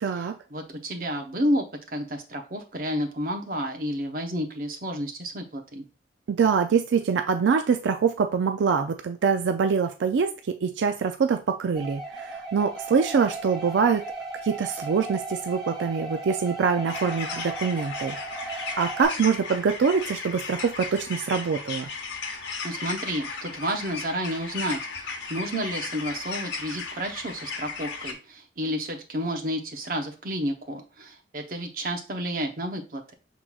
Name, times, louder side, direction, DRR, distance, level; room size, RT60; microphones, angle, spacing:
voice 1, 0.0-0.3 6.3-14.1 14.4-21.9, right 6 dB, 85° right, 6 dB, 0.4 m, -24 dB
voice 2, 0.5-5.9 22.6-33.1, equal, 50° right, 4 dB, 0.8 m, -31 dB
sound 1, 11.8-19.1, right 3 dB, ahead, 1.7 m, -36 dB
sound 2, 16.9-28.1, left 4 dB, 80° left, 0.9 m, -36 dB
6.0 x 3.8 x 2.3 m, 0.32 s
head